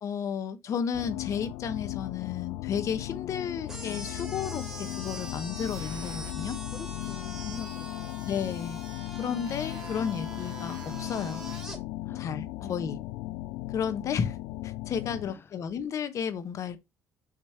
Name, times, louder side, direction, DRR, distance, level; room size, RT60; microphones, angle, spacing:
voice 1, 0.0-6.6 8.3-8.8 9.2-11.4 12.1-13.0 13.7-14.4 14.6-16.8, left 7 dB, 55° left, 1.2 m, -33 dB
sound 1, 0.9-15.3, left 17 dB, 85° left, 0.4 m, -37 dB
sound 2, 3.7-11.8, right 1 dB, 10° right, 2.5 m, -43 dB
sound 3, 4.4-6.6 7.0-11.7, right 10 dB, 75° right, 0.9 m, -51 dB
voice 2, 6.7-8.3 12.0-12.3 12.6-13.0 15.2-15.5, left 6 dB, 40° left, 0.5 m, -44 dB
7.5 x 3.3 x 4.4 m
supercardioid pair, 80°, 6 cm